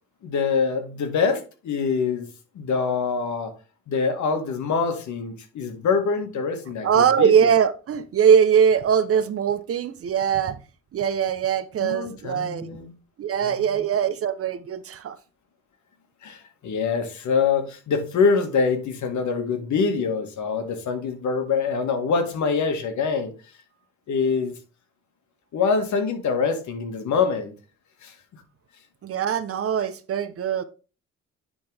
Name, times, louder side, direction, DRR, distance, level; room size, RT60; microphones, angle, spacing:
voice 1, 0.2-2.3 2.6-3.5 3.9-6.9 7.2-7.5 11.8-12.9 13.4-13.7 16.2-23.3 24.1-24.6 25.5-27.5 28.0-28.4, left 5 dB, 70° left, 1.8 m, -25 dB
voice 2, 6.8-10.6 10.9-12.8 13.2-15.2 29.0-30.6, right 7 dB, 50° right, 0.7 m, -21 dB
9.9 x 3.8 x 3.4 m
cardioid pair, 90°, 30 cm